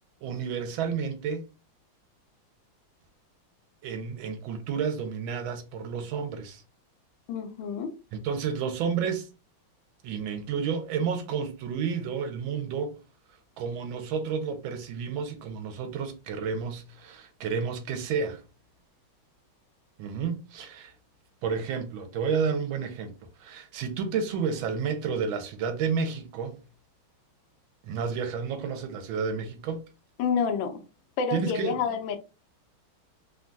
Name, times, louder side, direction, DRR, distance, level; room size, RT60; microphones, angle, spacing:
voice 1, 0.2-1.4 3.8-6.6 8.1-9.3 10.0-13.0 13.6-18.4 20.0-20.9 21.4-26.6 27.8-29.8 31.3-31.8, right 6 dB, 80° right, 1.4 m, -31 dB
voice 2, 7.3-7.9 30.2-30.8 31.2-32.2, left 6 dB, 75° left, 1.2 m, -28 dB
3.5 x 2.2 x 2.5 m
omnidirectional pair, 2.2 m